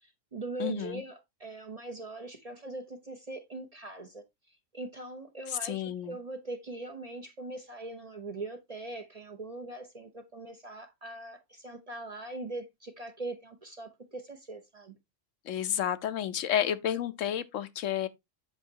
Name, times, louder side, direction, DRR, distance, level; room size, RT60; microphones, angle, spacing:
voice 1, 0.0-4.2 4.7-15.0, right 2 dB, 35° right, 0.7 m, -41 dB
voice 2, 0.6-1.0 5.6-6.2 15.5-18.1, left 10 dB, 75° left, 1.0 m, -31 dB
8.0 x 6.1 x 2.8 m
omnidirectional pair, 1.4 m